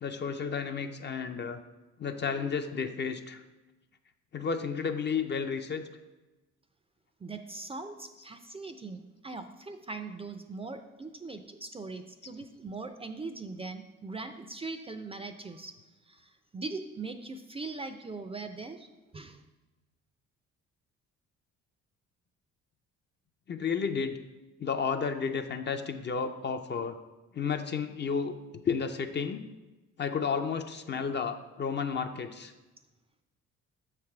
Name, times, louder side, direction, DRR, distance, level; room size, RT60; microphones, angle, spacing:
voice 1, 0.0-1.6 2.0-3.4 4.3-5.8 23.5-24.2 24.6-27.0 27.3-28.4 28.6-29.5 30.0-32.5, left 6 dB, 35° left, 8 dB, 0.5 m, -32 dB
voice 2, 7.2-15.7 16.1-18.9 19.1-19.4, right 3 dB, 20° right, 8 dB, 0.4 m, -41 dB
6.6 x 3.3 x 5.8 m, 1.1 s
cardioid pair, 90°, 30 cm